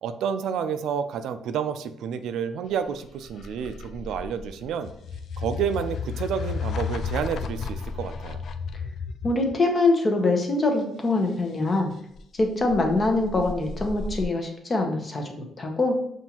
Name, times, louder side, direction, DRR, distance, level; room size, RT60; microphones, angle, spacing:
voice 1, 0.0-4.9 5.4-8.4, right 7 dB, 80° right, 10 dB, 0.3 m, -30 dB
sound 1, 2.8-9.5 12.1-14.2, left 5 dB, 65° left, 0.3 m, -33 dB
voice 2, 9.2-11.9 12.3-16.0, left 2 dB, 35° left, 3 dB, 0.8 m, -24 dB
5.4 x 2.5 x 2.9 m, 0.75 s
cardioid pair, 90°, 0 cm